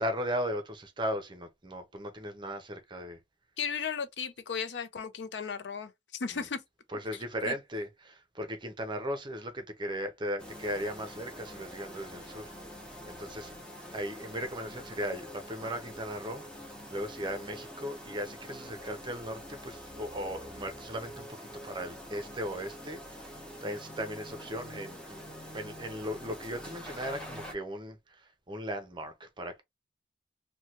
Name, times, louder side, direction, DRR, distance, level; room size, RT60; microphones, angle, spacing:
voice 1, 0.0-3.2 6.3-6.5 6.9-12.5 13.1-13.5 13.9-23.3 23.6-25.2 25.5-29.6, equal, 25° right, 0.6 m, -37 dB
voice 2, 3.6-6.6 7.4-7.5, left 6 dB, 65° left, 0.5 m, -35 dB
sound 1, 10.4-27.5, equal, 5° left, 0.8 m, -46 dB
3.1 x 2.2 x 2.8 m
head